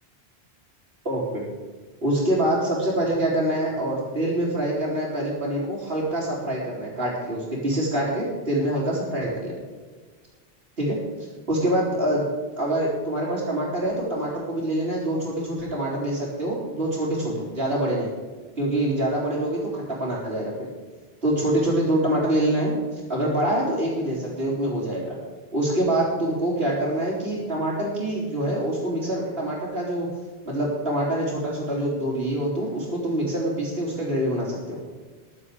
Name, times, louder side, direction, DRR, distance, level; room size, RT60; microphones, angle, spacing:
voice 1, 1.0-1.5 2.0-9.5 10.8-11.0 11.5-12.3 12.6-18.1 18.6-20.5 21.2-25.2 25.5-30.1 30.4-34.8, right 1 dB, 70° right, -9 dB, 3.8 m, -25 dB
14.5 x 11.5 x 4.9 m, 1.4 s
omnidirectional pair, 1.0 m